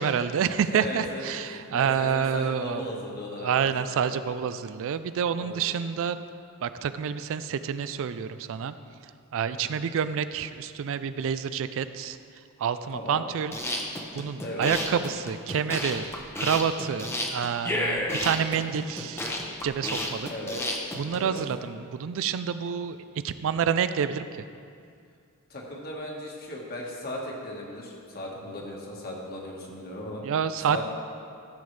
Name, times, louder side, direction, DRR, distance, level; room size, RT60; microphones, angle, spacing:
voice 1, 0.0-2.8 3.4-6.2 6.6-8.7 9.3-12.2 12.6-13.6 14.1-16.1 16.4-19.2 19.6-20.3 21.0-23.0 23.2-24.3 30.2-30.8, right 7 dB, 65° right, 12 dB, 0.4 m, -28 dB
voice 2, 0.7-1.2 1.5-3.7 4.0-4.2 5.4-5.7 9.5-9.7 12.9-13.2 14.4-14.7 20.3-20.6 21.1-21.4 25.5-30.2 30.7-30.8, left 1 dB, 45° left, -2 dB, 1.5 m, -37 dB
sound 1, 13.4-21.4, left 1 dB, 10° left, 0.7 m, -31 dB
14.0 x 7.1 x 3.3 m, 2.3 s
head